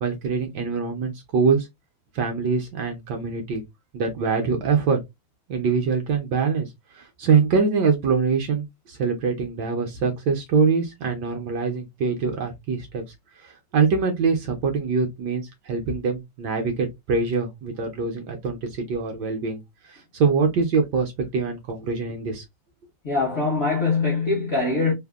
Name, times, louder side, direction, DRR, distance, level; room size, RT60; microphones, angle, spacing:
voice 1, 0.0-1.7 2.1-3.6 3.9-5.0 5.5-6.7 7.0-13.0 13.4-22.4, right 5 dB, 70° right, 1.1 m, -24 dB
voice 2, 23.0-24.9, left 3 dB, 55° left, 0.7 m, -22 dB
3.3 x 2.1 x 2.3 m
omnidirectional pair, 2.2 m